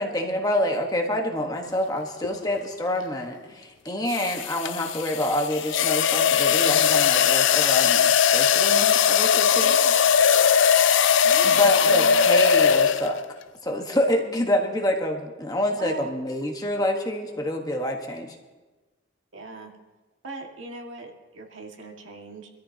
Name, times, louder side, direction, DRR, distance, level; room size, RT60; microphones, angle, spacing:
voice 1, 0.0-9.7 11.4-13.2 13.6-18.4, left 1 dB, 20° left, 2 dB, 1.3 m, -27 dB
sound 1, 2.2-2.4 4.1-13.3, left 7 dB, 75° left, 0.5 m, -20 dB
voice 2, 9.5-10.0 11.2-12.3 15.8-16.2 19.3-19.7 20.2-22.5, right 2 dB, 85° right, 1 dB, 1.9 m, -39 dB
24.5 x 13.5 x 2.8 m, 1.2 s
head